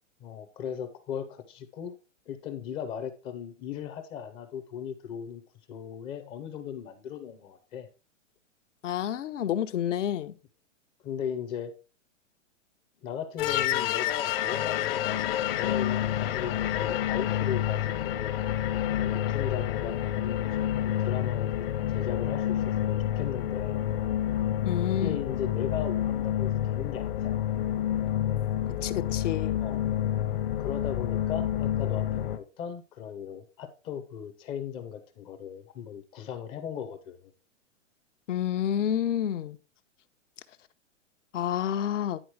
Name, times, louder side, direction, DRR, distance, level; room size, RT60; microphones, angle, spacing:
voice 1, 0.2-1.9 2.3-5.4 5.7-7.9 11.0-11.7 13.0-15.3 15.5-18.3 18.9-23.8 24.9-27.3 29.6-29.8 30.6-37.3, left 8 dB, 15° left, 0.5 m, -37 dB
voice 2, 8.8-10.3 24.7-25.2 28.8-29.6 38.3-39.6 41.3-42.2, left 10 dB, 75° left, 0.9 m, -29 dB
sound 1, 13.4-32.4, left 11 dB, 50° left, 0.9 m, -28 dB
10.0 x 4.1 x 4.6 m
hypercardioid pair, 155°, 37 cm